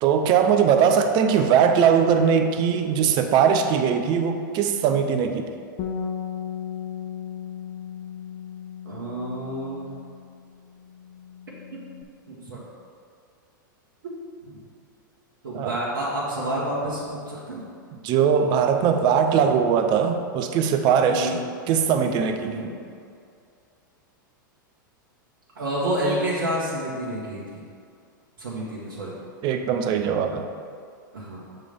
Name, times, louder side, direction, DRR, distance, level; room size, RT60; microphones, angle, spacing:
voice 1, 0.0-5.5 15.5-15.8 18.0-21.3 21.7-22.7 29.4-30.5, right 7 dB, 40° right, 7 dB, 0.6 m, -20 dB
Bass guitar, 5.8-12.0, left 8 dB, 45° left, 0.6 m, -36 dB
voice 2, 8.8-9.8 11.7-11.9 12.3-12.6 14.4-14.6 15.4-17.7 21.1-21.4 22.4-22.7 25.5-27.6 28.4-29.1 31.1-31.4, right 1 dB, 75° right, -6 dB, 1.4 m, -29 dB
7.3 x 3.3 x 5.3 m, 2.3 s
hypercardioid pair, 105°, 11 cm